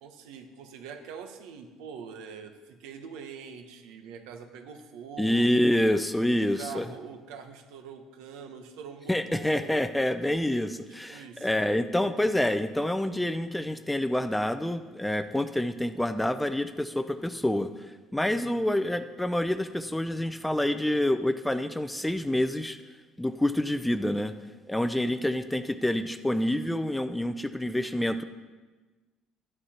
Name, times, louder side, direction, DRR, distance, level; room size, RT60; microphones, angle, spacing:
voice 1, 0.0-5.6 6.3-9.8 10.7-10.8 11.1-11.5, right 6 dB, 90° right, 6 dB, 1.2 m, -44 dB
voice 2, 5.2-6.9 9.1-17.7 18.1-22.8 23.2-24.3 24.7-28.2, left 1 dB, 5° left, 11 dB, 0.4 m, -27 dB
11.0 x 9.8 x 4.3 m, 1.3 s
cardioid pair, 140°, 0 cm